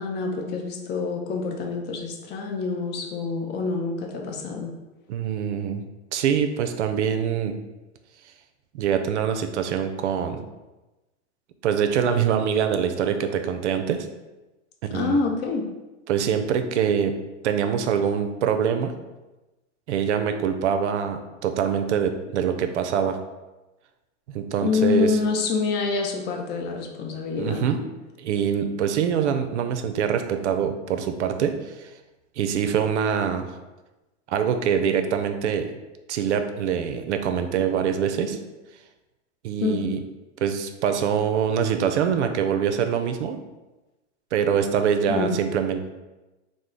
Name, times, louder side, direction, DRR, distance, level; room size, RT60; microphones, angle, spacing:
voice 1, 0.0-4.7 14.9-15.6 24.6-27.6 39.6-39.9 45.1-45.4, left 4 dB, 30° left, 2 dB, 0.5 m, -26 dB
voice 2, 5.1-5.8 6.1-7.6 8.7-10.5 11.6-14.1 14.8-15.2 16.1-17.1 17.4-19.0 19.9-23.2 24.3-25.2 27.4-27.8 28.2-31.9 32.4-33.5 34.3-35.7 36.1-38.4 39.4-40.0 40.4-43.4 44.3-45.9, right 7 dB, 80° right, 7 dB, 0.5 m, -24 dB
3.1 x 2.0 x 3.7 m, 1.1 s
hypercardioid pair, 110°, 34 cm